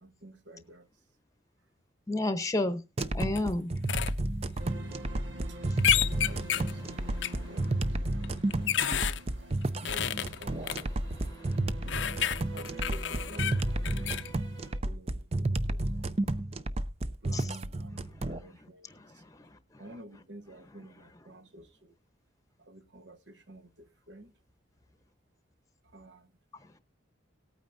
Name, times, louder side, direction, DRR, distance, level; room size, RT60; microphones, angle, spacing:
voice 1, 0.0-0.9 5.5-5.6 5.9-6.0 6.2-7.2 7.5-8.3 9.4-11.0 12.5-14.2 14.8-16.1 17.2-18.9 19.1-19.2 19.8-21.9 22.6-24.3 25.8-26.3, right 1 dB, 65° right, 1.2 m, -50 dB
voice 2, 2.1-2.8 3.1-3.7 6.1-7.8 8.3-9.0 9.8-9.9 10.5-11.6 13.4-14.2 17.3-17.5 18.0-19.9 26.5-26.8, left 2 dB, 20° left, 0.9 m, -37 dB
sound 1, 3.0-3.4 3.9-4.1 5.8-6.7 7.2-7.3 8.2-9.2 9.8-10.8 11.9-14.3, left 10 dB, 70° left, 0.5 m, -30 dB
sound 2, 3.0-18.4, right 1 dB, 30° right, 0.6 m, -31 dB
sound 3, 4.6-14.8, right 1 dB, 90° right, 1.6 m, -46 dB
18.5 x 9.1 x 2.6 m
head